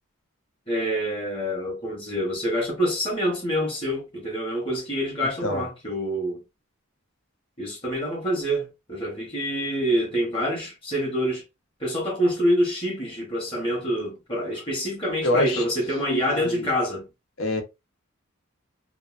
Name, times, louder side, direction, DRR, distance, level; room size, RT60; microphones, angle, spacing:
voice 1, 0.7-6.4 7.6-11.4 11.8-17.1, equal, 25° left, 1.0 m, -26 dB
voice 2, 15.2-15.6 16.0-16.7 17.4-17.6, left 1 dB, 75° left, 0.9 m, -26 dB
3.0 x 2.4 x 2.4 m
head